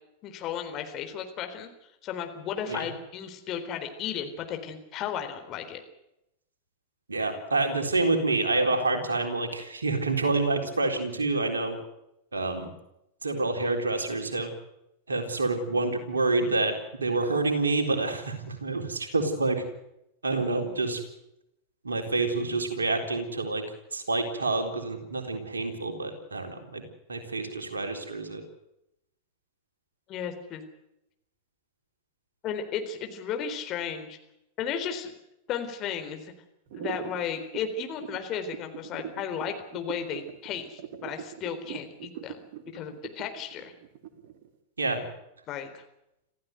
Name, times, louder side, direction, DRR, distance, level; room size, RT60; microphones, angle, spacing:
voice 1, 0.2-1.7 2.0-5.8 30.1-30.6 32.4-34.2 34.6-35.1 35.5-36.3 36.7-42.4 42.7-43.7 45.5-45.8, left 8 dB, 35° left, 6 dB, 4.0 m, -34 dB
voice 2, 7.1-11.8 12.3-12.7 13.2-14.5 15.1-16.7 17.0-19.6 20.2-21.0 21.8-23.6 23.9-26.8 27.1-28.4 44.8-45.0, right 3 dB, 75° right, 4 dB, 3.9 m, -27 dB
sound 1, 36.7-44.5, right 10 dB, 50° right, 2.9 m, -40 dB
26.5 x 15.5 x 8.1 m, 0.85 s
figure-of-eight pair, 90°, 0 cm